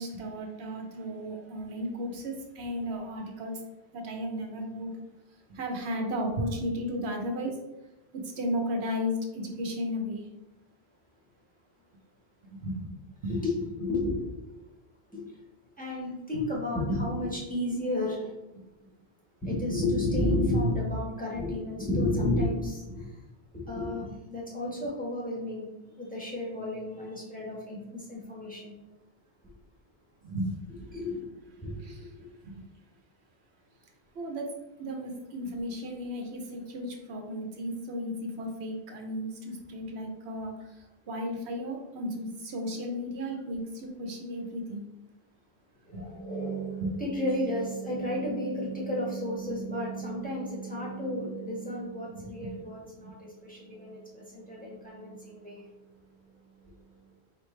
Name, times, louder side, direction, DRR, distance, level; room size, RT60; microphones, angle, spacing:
voice 1, 0.0-3.6 3.9-4.9 5.5-7.6 8.1-10.2 12.5-13.0 13.2-13.4 30.2-30.7 31.8-32.1 32.4-32.6 34.2-34.5 34.8-40.8 41.1-44.8 45.9-46.1 46.8-46.9 52.1-52.5, equal, 80° right, 2 dB, 1.0 m, -34 dB
voice 2, 13.3-14.3 15.1-15.3 15.8-18.3 19.4-23.1 23.5-25.7 26.0-28.7 29.4-29.5 30.9-31.2 31.6-32.5 45.8-55.7 56.6-56.7, left 1 dB, 10° left, -5 dB, 1.2 m, -32 dB
4.5 x 3.2 x 3.2 m, 0.98 s
omnidirectional pair, 1.1 m